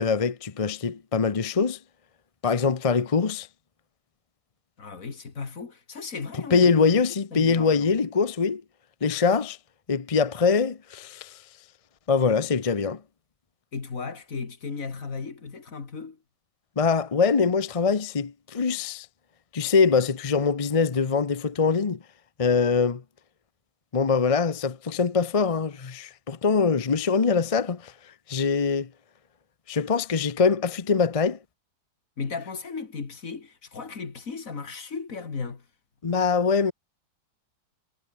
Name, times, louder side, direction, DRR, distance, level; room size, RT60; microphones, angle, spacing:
voice 1, 0.0-1.8 2.4-3.5 6.5-8.6 9.0-9.6 9.9-11.4 12.1-13.0 16.8-19.1 19.5-22.0 22.4-23.0 23.9-27.9 28.3-28.9 29.7-31.4 36.0-36.7, left 5 dB, 30° left, 0.6 m, -23 dB
voice 2, 4.8-7.0 7.3-7.9 13.7-16.2 32.2-35.7, left 5 dB, 50° left, 2.5 m, -36 dB
omnidirectional pair, 1.8 m